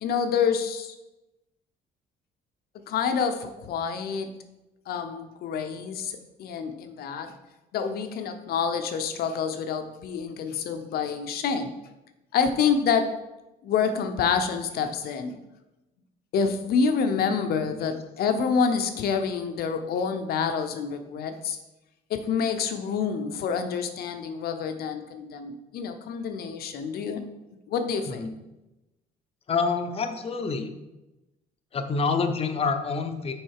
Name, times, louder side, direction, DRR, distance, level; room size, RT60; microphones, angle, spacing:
voice 1, 0.0-0.9 2.9-4.3 4.9-7.3 7.7-11.7 12.3-13.1 13.6-15.4 16.3-21.6 22.1-27.2 27.7-28.2, left 6 dB, 65° left, 7 dB, 0.8 m, -27 dB
voice 2, 29.5-30.7 31.7-33.3, left 4 dB, 35° left, 7 dB, 0.7 m, -27 dB
6.4 x 4.1 x 4.8 m, 0.99 s
cardioid pair, 110°, 17 cm